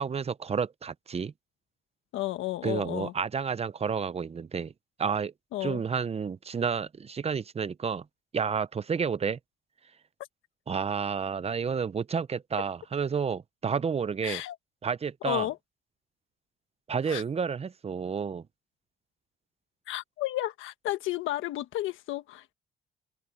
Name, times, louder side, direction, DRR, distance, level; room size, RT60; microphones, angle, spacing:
voice 1, 0.0-1.3 2.6-4.7 5.0-5.3 5.6-8.0 8.3-9.4 10.7-14.4 14.8-15.5 16.9-18.4, right 6 dB, 30° right, 0.7 m, -30 dB
voice 2, 2.1-3.1 5.5-5.8 14.2-14.6 15.2-15.6 17.1-17.2 19.9-22.5, left 15 dB, 90° left, 1.3 m, -32 dB
open air
cardioid pair, 90°, 20 cm